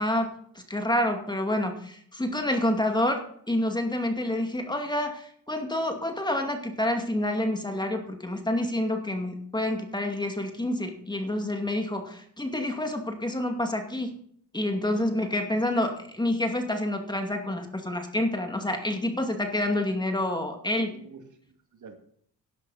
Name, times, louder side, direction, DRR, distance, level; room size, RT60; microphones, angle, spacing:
voice 1, 0.0-14.2 14.5-20.9, left 1 dB, 10° left, 4 dB, 2.3 m, -28 dB
voice 2, 20.8-22.0, right 5 dB, 55° right, 4 dB, 2.4 m, -48 dB
11.5 x 11.0 x 4.2 m, 0.62 s
cardioid pair, 75°, 36 cm